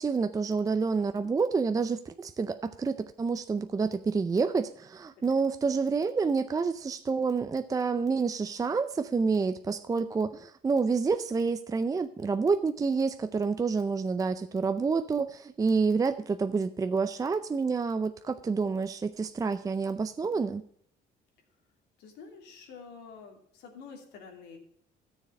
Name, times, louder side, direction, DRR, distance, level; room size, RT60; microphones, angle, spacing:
voice 1, 0.0-20.6, right 4 dB, 20° right, 10 dB, 0.5 m, -28 dB
voice 2, 22.0-24.6, left 5 dB, 90° left, 2 dB, 2.8 m, -48 dB
13.0 x 7.1 x 5.4 m, 0.66 s
cardioid pair, 110°, 17 cm